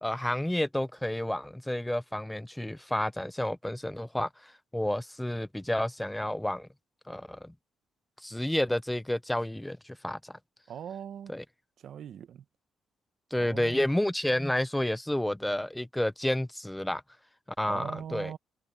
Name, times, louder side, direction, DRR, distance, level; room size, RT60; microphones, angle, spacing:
voice 1, 0.0-6.7 7.1-7.5 8.2-10.3 11.3-11.4 13.3-17.0 17.6-18.3, left 1 dB, 5° left, 0.7 m, -30 dB
voice 2, 10.7-11.3 11.8-12.4 13.4-13.9 17.7-18.4, right 9 dB, 65° right, 1.1 m, -41 dB
cardioid pair, 90°, 0 cm